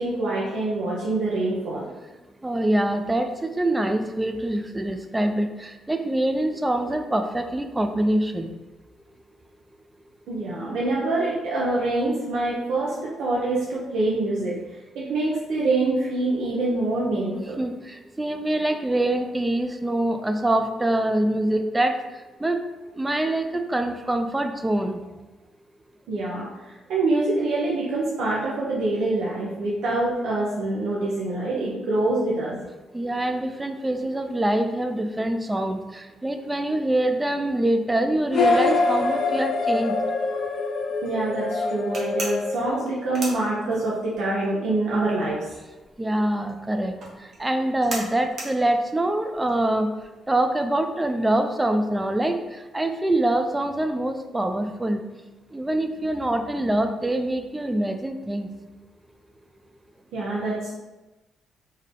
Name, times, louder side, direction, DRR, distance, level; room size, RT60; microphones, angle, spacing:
voice 1, 0.0-1.9 10.3-14.6 14.9-17.6 26.1-32.6 41.0-45.5 60.1-60.7, right 2 dB, 80° right, -6 dB, 0.8 m, -25 dB
voice 2, 2.4-8.5 17.6-21.9 22.4-22.6 23.0-25.0 32.9-40.0 46.0-46.9 47.4-49.9 50.3-52.4 52.7-55.0 55.5-58.5, right 1 dB, 15° right, 7 dB, 0.3 m, -24 dB
sound 1, 38.3-43.1, left 3 dB, 65° left, 0.5 m, -25 dB
sound 2, 41.9-44.2 44.4-50.2, right 2 dB, 55° right, 1.1 m, -37 dB
3.7 x 2.7 x 3.4 m, 1.1 s
cardioid pair, 90°, 0 cm